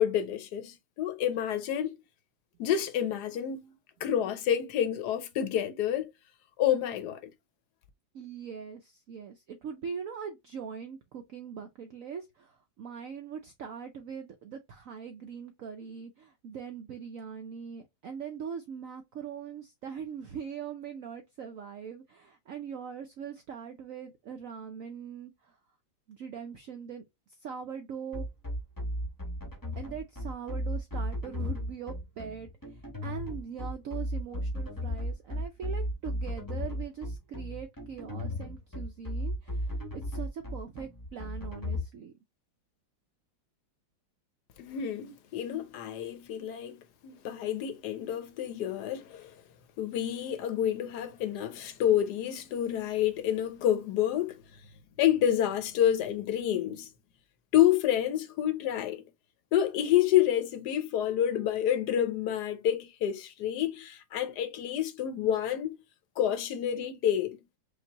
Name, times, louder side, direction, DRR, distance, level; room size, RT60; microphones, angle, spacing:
voice 1, 0.0-2.0 2.6-3.7 4.0-6.1 6.6-7.3 44.6-49.4 49.8-54.4 55.0-56.9 57.5-59.0 59.5-65.8 66.2-67.4, left 10 dB, 65° left, 1.2 m, -28 dB
voice 2, 8.1-25.6 26.1-28.3 29.8-42.1, right 7 dB, 70° right, 0.7 m, -41 dB
sound 1, 28.1-41.8, equal, 15° left, 0.7 m, -34 dB
5.2 x 2.4 x 2.8 m
omnidirectional pair, 2.1 m